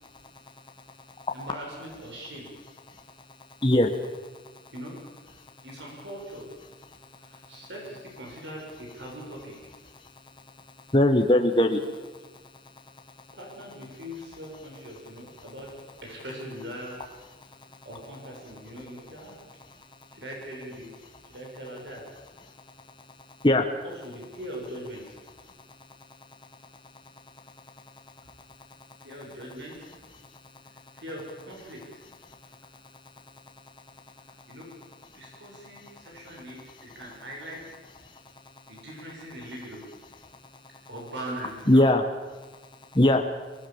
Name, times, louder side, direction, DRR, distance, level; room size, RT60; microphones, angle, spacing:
voice 1, 1.3-2.5 4.7-4.9 5.6-6.5 7.2-9.6 13.3-15.7 16.0-17.0 17.9-19.3 20.1-20.9 21.2-22.0 23.8-25.2 29.0-29.9 31.0-31.8 34.5-34.7 35.1-37.6 38.7-39.9 40.9-41.9, equal, 80° right, -1 dB, 6.9 m, -40 dB
voice 2, 10.9-11.8 23.4-23.7 41.7-42.0 42.9-43.2, left 1 dB, 25° left, 4 dB, 1.4 m, -19 dB
24.5 x 19.5 x 7.3 m, 1.3 s
head